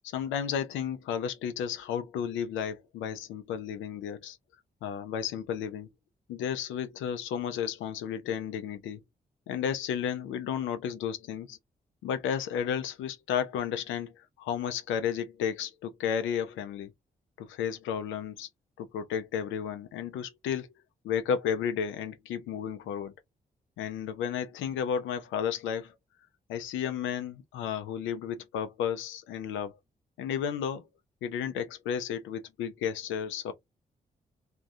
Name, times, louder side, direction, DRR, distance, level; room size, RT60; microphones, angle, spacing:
voice 1, 0.1-4.4 4.8-5.9 6.3-9.0 9.5-11.6 12.0-16.9 17.4-18.5 18.8-20.7 21.0-23.1 23.8-25.9 26.5-29.8 30.2-30.9 31.2-33.5, left 8 dB, 85° left, 0.4 m, -33 dB
2.3 x 2.2 x 2.6 m
supercardioid pair, 45°, 19 cm